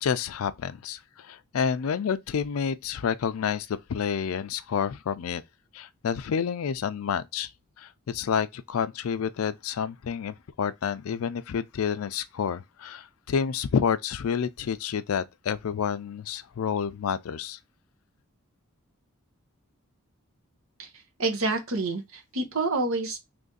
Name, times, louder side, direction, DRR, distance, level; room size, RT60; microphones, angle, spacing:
voice 1, 0.0-5.4 5.7-7.5 7.8-17.6, left 7 dB, 80° left, 0.4 m, -29 dB
voice 2, 21.2-23.2, right 3 dB, 70° right, 0.9 m, -28 dB
3.2 x 2.6 x 3.7 m
head